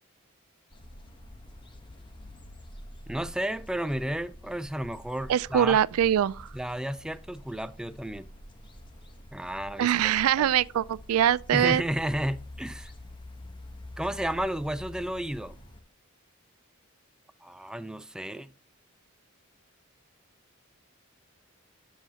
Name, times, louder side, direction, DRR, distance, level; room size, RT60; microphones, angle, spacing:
sound 1, 0.7-15.8, left 1 dB, 25° left, 1.0 m, -47 dB
voice 1, 3.1-5.8 6.5-8.3 9.3-9.9 10.4-10.5 11.5-12.9 14.0-15.6 17.4-18.5, right 1 dB, 5° right, 0.3 m, -32 dB
voice 2, 5.3-6.5 9.8-11.8, right 10 dB, 85° right, 0.3 m, -23 dB
9.8 x 7.3 x 2.8 m
head